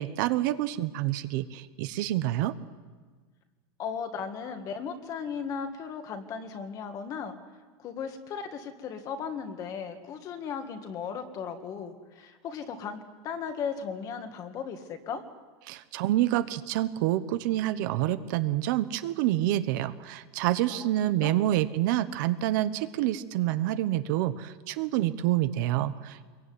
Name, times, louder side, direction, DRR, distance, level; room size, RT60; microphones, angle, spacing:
voice 1, 0.0-2.5 15.7-26.3, right 14 dB, 45° right, 11 dB, 1.1 m, -27 dB
voice 2, 3.8-7.4 7.8-15.2 20.7-20.9 21.2-21.3, left 6 dB, 25° left, 7 dB, 2.0 m, -36 dB
26.0 x 22.5 x 9.6 m, 1.5 s
supercardioid pair, 175°, 14 cm